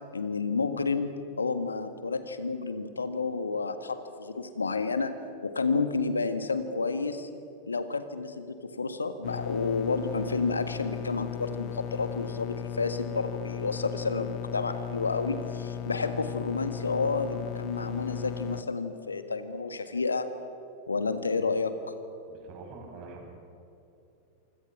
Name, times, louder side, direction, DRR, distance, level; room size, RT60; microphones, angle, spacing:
voice 1, 0.1-5.1 5.4-7.3 7.7-20.3 20.9-21.7, left 4 dB, 75° left, 10 dB, 1.7 m, -30 dB
sound 1, 9.2-18.6, left 10 dB, 40° left, 1.1 m, -36 dB
voice 2, 22.3-23.3, right 3 dB, 40° right, 1 dB, 7.0 m, -45 dB
26.0 x 25.5 x 6.0 m, 2.8 s
figure-of-eight pair, 90°, 0 cm